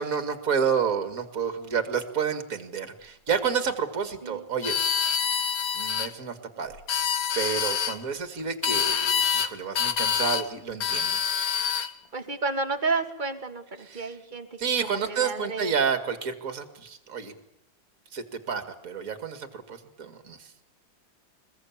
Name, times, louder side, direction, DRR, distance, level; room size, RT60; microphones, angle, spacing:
voice 1, 0.0-4.8 5.7-11.2 13.8-14.1 14.6-17.3 18.1-20.5, right 6 dB, 45° right, 8 dB, 2.5 m, -30 dB
sound 1, 4.6-6.1 6.7-8.0 8.6-9.5 9.8-10.5 10.8-11.9, left 7 dB, 55° left, 1.5 m, -26 dB
voice 2, 12.1-14.5 14.8-15.7, right 3 dB, 25° right, 6 dB, 2.1 m, -31 dB
23.5 x 21.5 x 8.8 m, 0.82 s
omnidirectional pair, 2.0 m